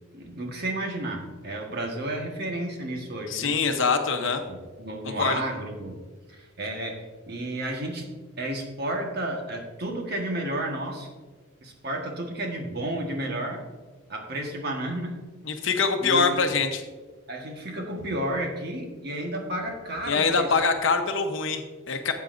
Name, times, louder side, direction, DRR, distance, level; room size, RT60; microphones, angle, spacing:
voice 1, 0.1-3.5 4.5-8.1 8.4-11.1 11.6-13.6 14.1-15.2 16.0-16.4 17.3-20.5, right 1 dB, 50° right, 2 dB, 1.4 m, -32 dB
voice 2, 3.3-4.4 5.0-5.4 15.5-16.8 20.1-22.1, left 4 dB, 65° left, 6 dB, 0.9 m, -24 dB
12.5 x 8.2 x 2.6 m, 1.3 s
head